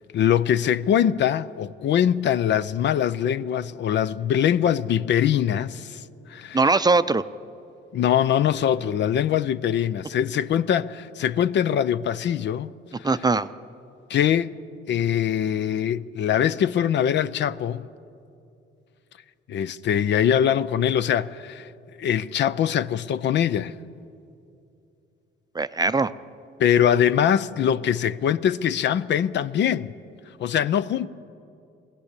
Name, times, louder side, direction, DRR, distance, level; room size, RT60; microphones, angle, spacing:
voice 1, 0.1-6.0 6.3-6.6 7.9-12.7 14.1-14.5 14.9-17.9 19.5-21.7 22.0-23.7 26.6-29.9 30.4-31.1, left 9 dB, 65° left, 0.6 m, -22 dB
voice 2, 6.5-7.2 13.0-13.5 25.5-26.1, right 3 dB, 20° right, 0.5 m, -20 dB
21.0 x 16.0 x 8.3 m
cardioid pair, 90°, 20 cm